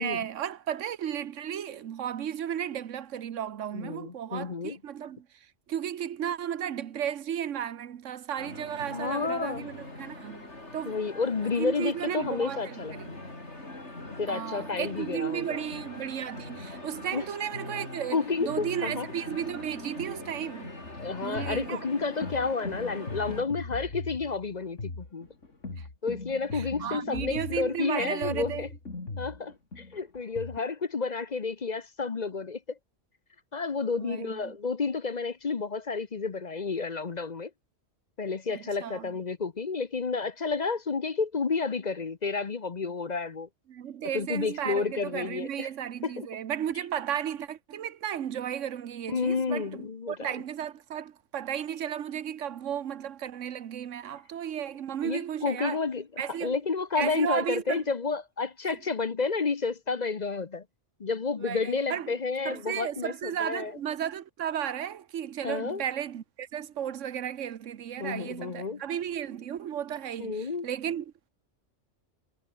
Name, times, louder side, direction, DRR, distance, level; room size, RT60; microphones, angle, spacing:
voice 1, 0.0-11.0 11.6-13.1 14.3-20.8 21.2-21.9 25.8-25.9 26.5-28.7 34.0-34.6 38.5-39.1 43.7-55.8 56.2-56.6 57.0-57.8 58.7-58.8 61.4-62.1 62.4-71.3, right 9 dB, 90° right, 1.3 m, -34 dB
voice 2, 3.7-4.8 8.9-9.7 10.9-12.9 14.2-15.7 17.1-17.2 18.1-19.1 21.0-25.3 26.0-28.7 29.2-32.8 33.5-37.5 38.2-43.5 44.1-45.7 46.0-46.3 49.1-50.1 55.0-56.1 56.4-60.6 61.0-63.7 65.4-65.8 68.0-68.8 70.2-70.7, left 4 dB, 40° left, 0.9 m, -31 dB
sound 1, 8.4-23.4, left 2 dB, 65° left, 5.6 m, -42 dB
sound 2, 20.8-30.6, left 3 dB, 90° left, 3.7 m, -40 dB
omnidirectional pair, 1.2 m